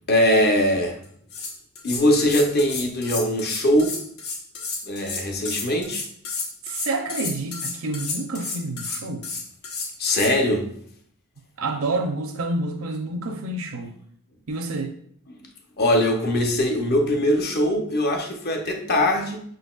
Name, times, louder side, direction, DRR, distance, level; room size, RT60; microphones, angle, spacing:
voice 1, 0.1-1.0 1.8-4.0 4.8-6.0 10.0-10.7 13.3-13.5 15.8-19.4, left 1 dB, 45° left, 0.7 m, -21 dB
sound 1, 1.0-1.1 1.3-10.3, left 4 dB, 80° left, 1.1 m, -31 dB
voice 2, 6.6-9.2 11.6-13.9 14.5-14.9, right 2 dB, 70° right, 0.6 m, -28 dB
5.7 x 3.9 x 2.3 m
head